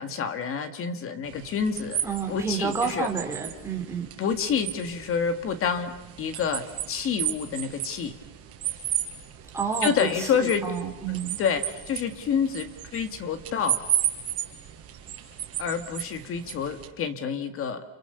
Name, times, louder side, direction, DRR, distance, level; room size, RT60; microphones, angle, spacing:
voice 1, 0.0-2.0 2.3-3.1 4.2-8.1 9.8-10.7 11.4-13.8 15.6-17.8, left 7 dB, 30° left, 10 dB, 1.9 m, -28 dB
sound 1, 1.3-16.9, right 11 dB, 35° right, 5.2 m, -34 dB
voice 2, 2.0-4.1 9.5-10.1 10.3-11.4, right 5 dB, 5° right, 1 dB, 3.6 m, -29 dB
30.0 x 29.0 x 6.8 m, 0.92 s
cardioid pair, 170°, 41 cm